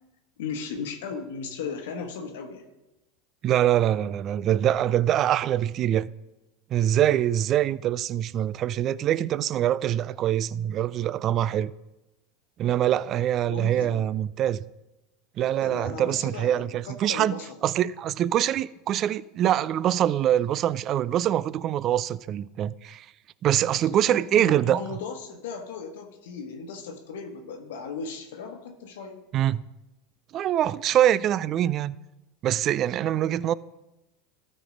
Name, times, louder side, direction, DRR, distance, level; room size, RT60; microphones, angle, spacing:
voice 1, 0.4-2.7 13.5-14.1 15.6-17.6 24.0-29.2 33.0-33.2, left 5 dB, 75° left, 1.1 m, -37 dB
voice 2, 3.4-6.1 6.7-11.7 12.6-14.6 15.4-23.1 23.4-24.8 29.3-29.6 30.3-31.9 32.4-33.5, right 11 dB, 45° right, 0.3 m, -24 dB
13.0 x 4.3 x 5.2 m
hypercardioid pair, 90°, 0 cm